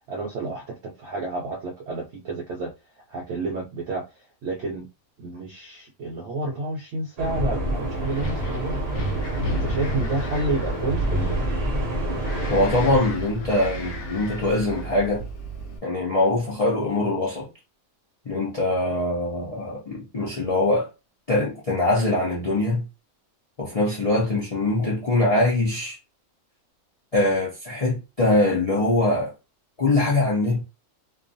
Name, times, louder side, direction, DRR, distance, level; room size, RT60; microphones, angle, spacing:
voice 1, 0.1-2.7 3.1-4.1 4.4-4.9 5.2-8.9 9.5-11.4, right 2 dB, 65° right, 0.7 m, -30 dB
sound 1, 7.2-13.0, equal, 85° right, 0.3 m, -28 dB
Wind, 7.7-15.8, right 2 dB, 90° left, 1.1 m, -31 dB
voice 2, 12.5-15.2 15.8-17.5 18.3-20.9 21.3-22.8 23.6-26.0 27.1-29.3 29.8-30.6, left 2 dB, 60° left, 0.3 m, -23 dB
2.4 x 2.2 x 2.5 m
omnidirectional pair, 1.5 m